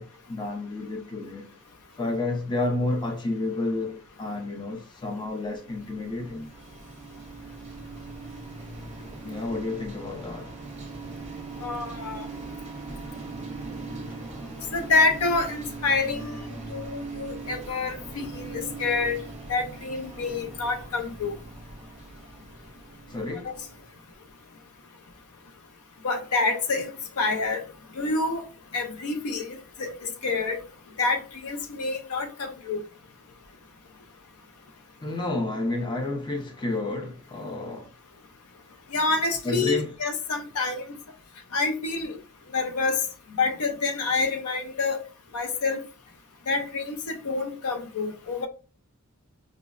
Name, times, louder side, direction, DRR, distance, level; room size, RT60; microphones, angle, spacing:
voice 1, 0.0-1.5 2.0-6.5 9.2-10.6 14.1-14.2 23.1-23.6 35.0-37.9 39.4-39.9, left 2 dB, 20° left, 0.6 m, -30 dB
sound 1, 5.2-24.2, right 3 dB, 30° right, 0.6 m, -40 dB
voice 2, 11.6-12.3 14.7-19.2 19.5-21.4 23.4-23.5 26.0-26.9 27.2-27.6 27.9-28.4 28.7-30.6 31.0-32.8 38.9-41.0 41.5-42.2 42.5-43.1 43.4-45.0 45.3-45.8 46.5-48.5, left 3 dB, 80° left, 0.5 m, -27 dB
5.0 x 2.0 x 2.4 m
head